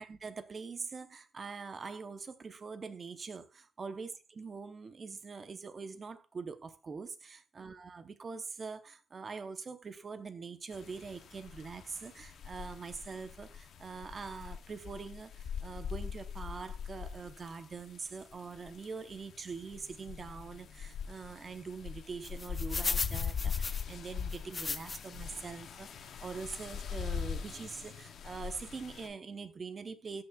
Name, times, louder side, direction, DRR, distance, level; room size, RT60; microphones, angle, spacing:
voice 1, 0.0-30.2, right 5 dB, 35° right, 0.7 m, -44 dB
sound 1, 10.7-29.1, left 7 dB, 65° left, 0.7 m, -42 dB
sound 2, 22.2-25.2 25.7-25.8 26.5-26.7 27.2-27.3 27.5-27.7, left 4 dB, 30° left, 0.4 m, -37 dB
13.0 x 5.7 x 2.3 m
cardioid pair, 130°, 0 cm